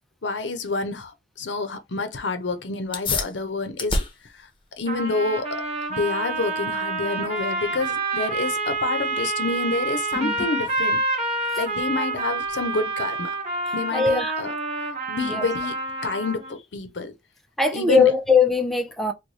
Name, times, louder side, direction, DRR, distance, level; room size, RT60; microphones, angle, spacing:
voice 1, 0.2-1.1 1.4-4.0 4.3-4.5 4.8-5.5 5.9-11.0 11.6-13.3 13.7-14.5 15.1-17.1 17.7-18.2, left 3 dB, 85° left, 0.7 m, -28 dB
sound 1, 2.8-12.9, left 3 dB, 30° left, 0.8 m, -35 dB
sound 2, 4.9-16.5, right 3 dB, 35° right, 1.0 m, -28 dB
voice 2, 13.9-14.3 15.2-15.5 17.6-19.1, left 4 dB, ahead, 0.4 m, -20 dB
3.1 x 2.2 x 4.0 m
head